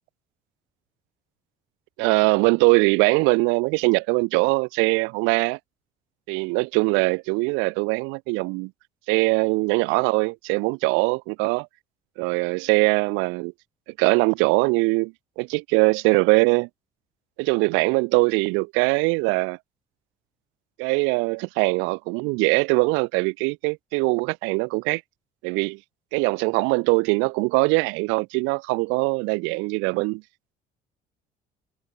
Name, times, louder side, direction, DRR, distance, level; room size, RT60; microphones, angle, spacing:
voice 1, 2.0-5.6 6.3-8.7 9.1-11.7 12.2-13.5 14.0-16.7 17.4-19.6 20.8-25.0 25.4-25.8 26.1-30.2, right 29 dB, 90° right, 7.5 m, -22 dB
supercardioid pair, 90°, 19 cm